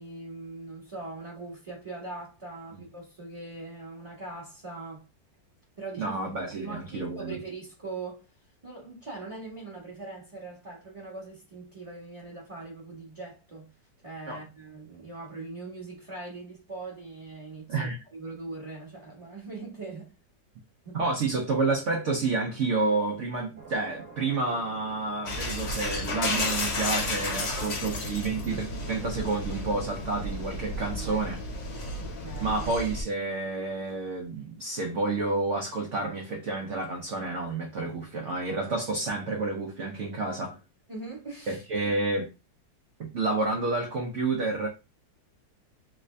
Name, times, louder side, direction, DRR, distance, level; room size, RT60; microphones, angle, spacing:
voice 1, 0.0-5.0 5.8-8.2 8.6-13.7 14.0-20.1 20.8-21.0 27.5-27.8 30.9-31.2 32.0-32.6 40.9-41.9, right 3 dB, 25° right, 0.8 m, -41 dB
voice 2, 6.0-7.4 14.3-14.4 17.7-18.0 20.9-31.4 32.4-40.6 41.5-42.3 43.0-44.7, right 3 dB, 70° right, 0.7 m, -29 dB
sound 1, 23.6-31.1, right 4 dB, 50° right, 1.2 m, -50 dB
sound 2, 25.3-33.0, left 2 dB, 50° left, 1.2 m, -32 dB
3.2 x 2.6 x 3.1 m
omnidirectional pair, 2.0 m